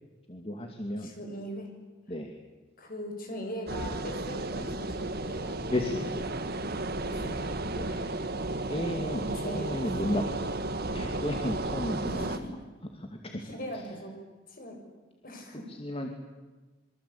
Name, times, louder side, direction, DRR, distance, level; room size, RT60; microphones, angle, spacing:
voice 1, 0.3-1.1 2.1-2.3 5.7-6.1 7.8-8.0 8.7-10.4 10.9-12.3 13.0-13.3 15.7-16.2, left 1 dB, 30° left, 3 dB, 2.4 m, -33 dB
voice 2, 1.0-1.8 2.8-6.1 7.0-7.6 9.2-10.2 10.4-10.5 12.0-12.6 13.2-14.2 14.5-14.9 15.2-15.7, equal, 50° left, 3 dB, 7.0 m, -41 dB
sound 1, 3.7-12.4, right 2 dB, 55° right, 2.0 m, -33 dB
27.0 x 24.0 x 8.7 m, 1.2 s
head